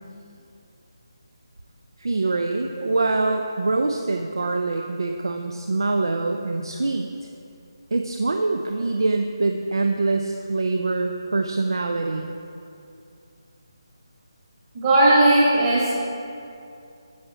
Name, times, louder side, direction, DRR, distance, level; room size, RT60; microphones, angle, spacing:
voice 1, 2.0-7.1 7.9-12.4, right 3 dB, 60° right, 4 dB, 0.5 m, -24 dB
voice 2, 14.7-15.9, right 1 dB, 30° right, -7 dB, 1.7 m, -17 dB
9.4 x 5.8 x 4.9 m, 2.6 s
figure-of-eight pair, 150°, 3 cm